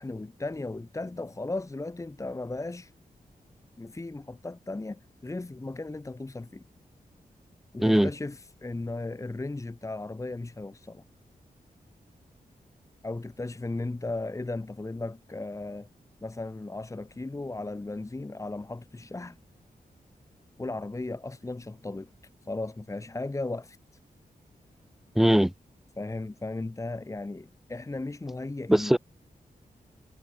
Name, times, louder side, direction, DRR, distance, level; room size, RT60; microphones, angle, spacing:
voice 1, 0.0-2.9 3.8-6.6 7.7-11.0 13.0-15.9 16.2-19.4 20.6-22.1 22.4-23.8 26.0-29.0, left 2 dB, 20° left, 1.2 m, -36 dB
voice 2, 25.2-25.5 28.7-29.0, right 1 dB, ahead, 0.3 m, -20 dB
wide cardioid pair, 110°, 15 cm